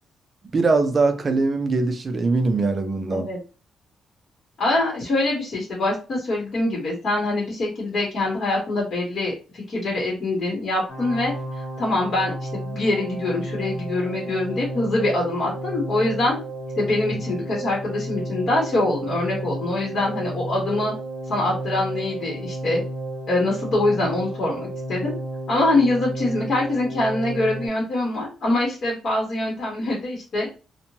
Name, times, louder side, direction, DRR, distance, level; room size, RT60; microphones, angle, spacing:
voice 1, 0.5-3.3, right 3 dB, 25° right, 0.4 m, -21 dB
voice 2, 4.6-16.4 16.8-20.9 21.3-22.8 23.3-25.1 25.5-30.5, left 2 dB, 40° left, 0.9 m, -24 dB
sound 1, 10.9-27.7, right 1 dB, 70° left, 0.9 m, -32 dB
3.0 x 2.1 x 2.8 m
cardioid pair, 175°, 0 cm